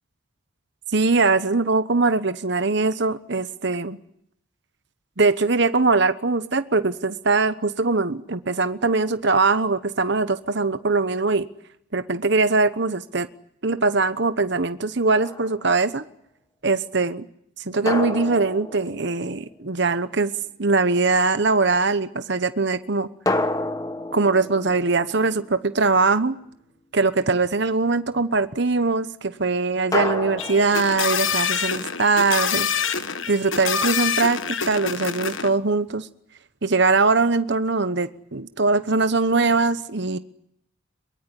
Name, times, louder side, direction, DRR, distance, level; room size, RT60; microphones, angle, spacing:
voice 1, 0.9-4.0 5.2-11.5 11.9-13.3 13.6-16.0 16.6-17.3 17.7-20.3 20.6-23.1 24.1-26.4 26.9-32.7 33.3-36.1 36.6-40.2, right 3 dB, 55° right, 1.1 m, -21 dB
sound 1, 15.2-15.8 17.9-19.7 23.3-25.9 29.9-31.6, left 2 dB, 15° left, 1.3 m, -30 dB
sound 2, 30.4-35.5, left 7 dB, 65° left, 1.4 m, -26 dB
23.0 x 22.5 x 9.9 m
head